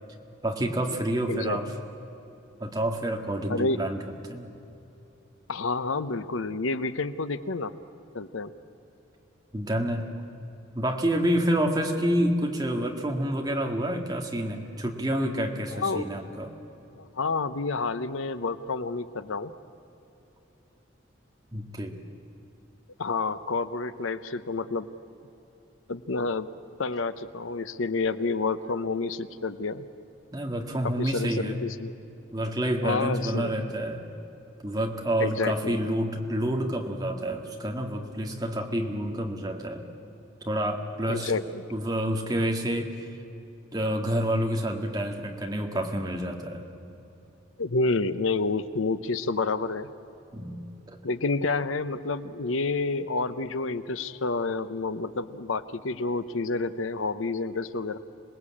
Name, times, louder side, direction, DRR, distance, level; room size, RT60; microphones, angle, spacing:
voice 1, 0.4-1.7 2.6-4.0 4.3-4.5 9.5-10.1 10.8-16.5 21.5-22.0 30.3-31.6 32.3-34.0 34.6-39.9 40.4-41.3 41.7-42.9 43.7-46.6 50.3-50.6 50.9-51.0, right 1 dB, 20° right, 2 dB, 1.9 m, -28 dB
voice 2, 5.5-7.7 8.1-8.5 15.7-16.2 17.0-19.5 23.0-24.9 25.9-26.5 26.8-29.8 30.8-31.9 32.8-33.5 35.2-35.8 41.1-41.6 47.6-49.9 51.0-58.0, left 3 dB, 80° left, 13 dB, 0.8 m, -29 dB
27.0 x 20.0 x 8.6 m, 3.0 s
head